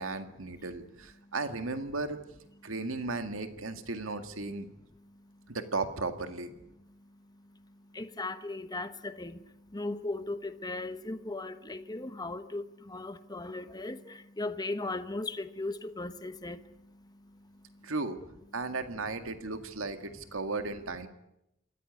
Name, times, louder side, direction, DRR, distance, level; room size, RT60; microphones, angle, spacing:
voice 1, 0.0-2.2 2.6-4.7 5.5-6.5 17.8-18.2 18.5-21.1, right 3 dB, 85° right, 2.0 m, -35 dB
voice 2, 7.9-16.9 17.2-17.4 17.7-17.9 19.4-19.5, left 2 dB, 20° left, 1.1 m, -38 dB
26.5 x 14.5 x 9.9 m
head